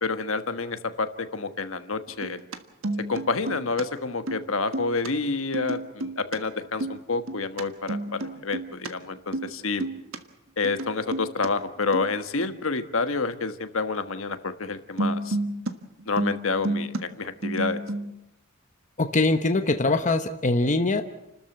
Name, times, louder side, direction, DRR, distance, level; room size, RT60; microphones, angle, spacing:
voice 1, 0.0-2.4 3.1-9.8 10.6-15.4 16.1-17.8, left 4 dB, 70° left, 8 dB, 1.4 m, -28 dB
sound 1, 2.1-2.6 2.8-3.8 4.1-4.4 4.7-5.1 5.5-6.4 6.6-7.6 7.9-8.9 9.2-9.5 9.8-10.2 10.6-11.5 11.9-12.1 12.4-12.6 15.0-15.7 16.0-17.0 17.3-18.1, right 2 dB, 75° right, 1.5 m, -30 dB
voice 2, 19.0-21.0, left 2 dB, 35° left, 7 dB, 1.0 m, -22 dB
29.5 x 13.5 x 8.0 m, 0.88 s
head